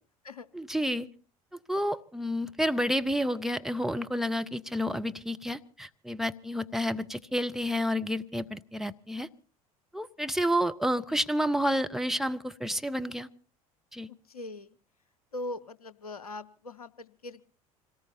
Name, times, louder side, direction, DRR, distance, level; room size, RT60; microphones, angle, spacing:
voice 1, 0.5-1.1 1.7-9.3 9.9-13.3 13.9-14.1, equal, ahead, 7 dB, 0.8 m, -30 dB
voice 2, 14.1-14.8 15.3-17.4, left 2 dB, 80° left, 18 dB, 0.7 m, -41 dB
26.5 x 18.5 x 2.8 m, 0.37 s
figure-of-eight pair, 65°, 19 cm